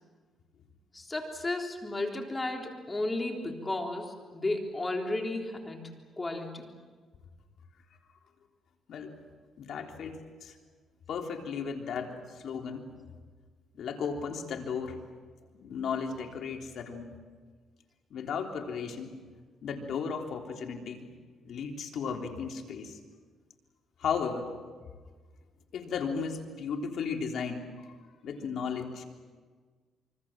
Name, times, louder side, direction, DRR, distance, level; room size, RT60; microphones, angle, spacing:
voice 1, 0.9-5.9 6.2-6.7, left 2 dB, 20° left, 2 dB, 3.8 m, -33 dB
voice 2, 9.6-10.5 11.1-12.9 13.8-15.0 15.5-17.2 18.1-19.2 19.6-21.1 21.4-23.0 24.0-24.5 25.7-27.7 28.2-29.0, left 6 dB, 65° left, 3 dB, 3.6 m, -35 dB
26.0 x 24.5 x 7.6 m, 1.5 s
cardioid pair, 90°, 0 cm